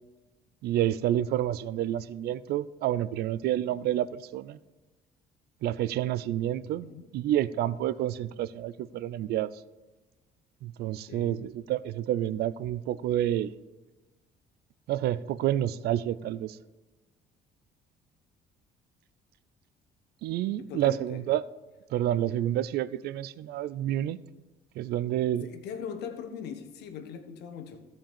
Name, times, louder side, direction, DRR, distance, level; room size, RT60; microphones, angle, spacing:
voice 1, 0.6-4.6 5.6-9.5 10.6-13.5 14.9-16.6 20.2-21.4 21.9-24.2 24.8-25.5, right 12 dB, 70° right, 0.5 m, -29 dB
voice 2, 11.1-11.4 20.6-21.2 25.4-27.9, left 7 dB, 80° left, 1.2 m, -40 dB
14.0 x 5.1 x 7.1 m
cardioid pair, 110°, 17 cm